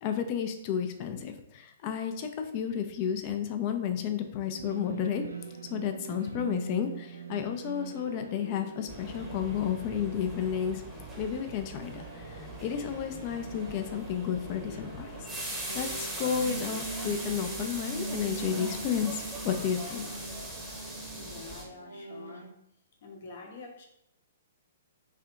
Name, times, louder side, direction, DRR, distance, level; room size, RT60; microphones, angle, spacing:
voice 1, 0.0-5.2 5.7-10.8 11.2-15.1 15.7-20.1, left 8 dB, 35° left, 7 dB, 0.5 m, -32 dB
sound 1, 4.5-22.5, right 3 dB, 75° right, 0.5 m, -43 dB
sound 2, 8.9-21.6, right 1 dB, 5° right, 0.9 m, -40 dB
voice 2, 21.2-22.5 23.0-23.8, left 3 dB, 50° left, 1 dB, 0.9 m, -46 dB
3.3 x 2.8 x 3.6 m, 0.77 s
figure-of-eight pair, 115°, 0 cm